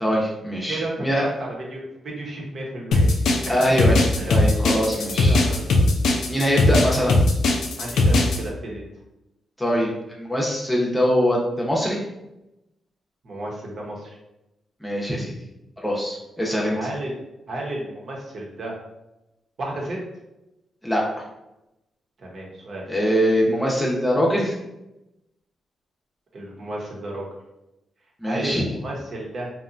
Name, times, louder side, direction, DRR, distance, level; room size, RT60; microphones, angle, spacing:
voice 1, 0.0-1.3 3.5-5.4 6.3-7.2 9.6-12.0 14.8-15.3 15.8-16.8 20.8-21.0 22.9-24.5 28.2-28.6, equal, 10° left, -4 dB, 0.7 m, -22 dB
voice 2, 0.7-1.1 1.4-3.2 3.5-3.7 4.1-4.4 5.2-5.7 7.8-8.9 13.2-14.1 16.7-17.2 17.5-18.7 19.6-20.0 22.2-22.9 26.3-27.3 28.2-29.5, right 1 dB, 60° right, -2 dB, 0.8 m, -32 dB
sound 1, 2.9-8.4, left 2 dB, 85° left, 0.4 m, -18 dB
2.8 x 2.2 x 2.5 m, 0.92 s
cardioid pair, 65°, 0 cm